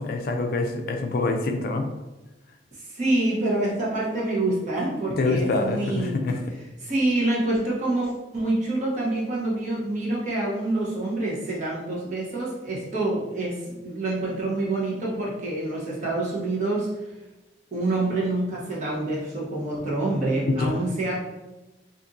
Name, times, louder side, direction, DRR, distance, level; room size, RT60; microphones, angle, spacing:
voice 1, 0.0-1.9 5.2-6.4 20.7-20.8, left 3 dB, 55° left, 5 dB, 0.3 m, -25 dB
voice 2, 2.9-6.2 6.8-16.9 17.7-21.2, right 2 dB, 40° right, -5 dB, 0.9 m, -26 dB
2.6 x 2.6 x 3.6 m, 1.0 s
head